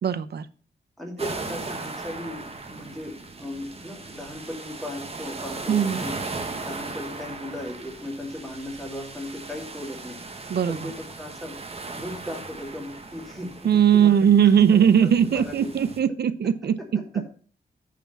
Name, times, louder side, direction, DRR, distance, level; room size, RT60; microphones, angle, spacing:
voice 1, 0.0-0.5 5.7-6.0 10.5-10.9 13.6-17.2, right 8 dB, 65° right, 15 dB, 0.7 m, -20 dB
voice 2, 1.0-6.2 6.6-10.2 10.7-11.6 11.9-14.3 14.7-15.7 17.1-17.2, left 1 dB, ahead, -1 dB, 2.6 m, -37 dB
sound 1, 1.2-16.0, right 3 dB, 35° right, 1.5 m, -38 dB
9.1 x 5.1 x 6.7 m, 0.42 s
wide cardioid pair, 125°, 18 cm